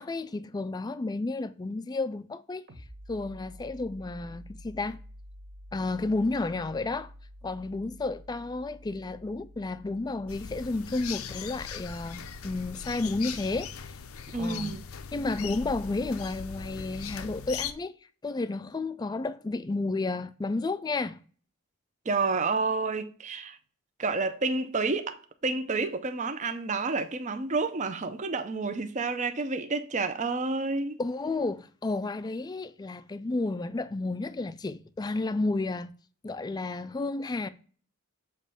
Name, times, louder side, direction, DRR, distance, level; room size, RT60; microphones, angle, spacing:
voice 1, 0.0-2.7 3.1-5.0 5.7-7.1 7.4-13.9 14.3-14.8 15.1-18.0 18.2-21.2 31.0-35.9 36.2-37.5, left 3 dB, 20° left, 0.3 m, -32 dB
sound 1, 2.7-14.0, equal, 60° right, 1.5 m, -50 dB
sound 2, 10.3-17.7, left 7 dB, 80° left, 0.5 m, -40 dB
voice 2, 14.3-14.8 22.1-23.6 24.0-31.0, right 3 dB, 35° right, 0.5 m, -29 dB
7.2 x 3.1 x 5.4 m
head